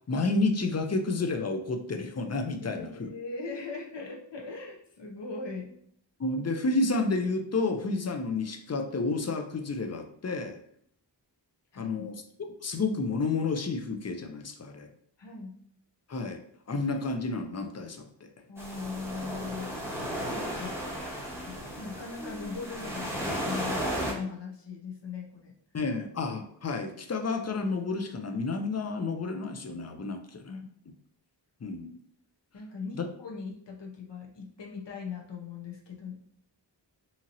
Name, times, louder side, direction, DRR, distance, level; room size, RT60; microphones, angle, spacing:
voice 1, 0.1-3.1 6.2-10.6 11.8-14.9 16.1-16.4 16.7-18.3 25.7-30.5 31.6-31.9 32.9-33.1, left 3 dB, 35° left, 6 dB, 0.4 m, -30 dB
voice 2, 2.6-5.8 11.7-12.1 15.2-15.6 18.5-19.8 20.3-20.8 21.4-25.5 30.5-30.7 32.5-36.3, left 4 dB, 70° left, -1 dB, 0.8 m, -40 dB
sound 1, 18.6-24.1, equal, 5° right, 1.0 m, -34 dB
2.8 x 2.7 x 2.6 m, 0.65 s
wide cardioid pair, 40°, 45 cm